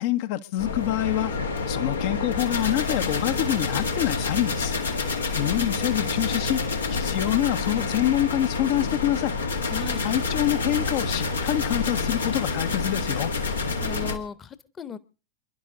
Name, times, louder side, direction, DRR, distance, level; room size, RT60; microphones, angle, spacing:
voice 1, 0.0-1.3 1.7-4.8 5.4-6.6 7.0-9.3 10.0-13.3, left 14 dB, 50° left, 1.1 m, -26 dB
sound 1, 0.6-14.2, left 4 dB, 75° left, 1.8 m, -28 dB
voice 2, 9.7-10.0 13.8-15.0, left 6 dB, 25° left, 1.2 m, -36 dB
28.5 x 11.0 x 3.9 m
figure-of-eight pair, 90°, 0 cm